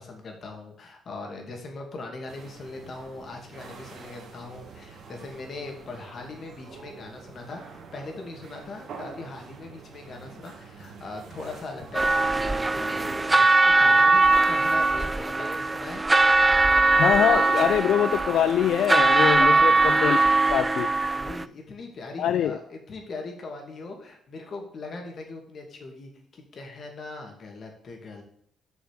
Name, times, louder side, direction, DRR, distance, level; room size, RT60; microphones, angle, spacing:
voice 1, 0.0-16.0 19.4-19.8 21.1-28.2, left 3 dB, 50° left, 2.5 m, -40 dB
sound 1, 2.3-13.5, right 5 dB, 65° right, 2.0 m, -46 dB
sound 2, 11.9-21.5, right 3 dB, 20° right, 0.4 m, -21 dB
voice 2, 17.0-20.2 20.5-20.9 22.2-22.6, left 10 dB, 75° left, 0.3 m, -23 dB
6.8 x 6.1 x 6.7 m
cardioid pair, 90°, 0 cm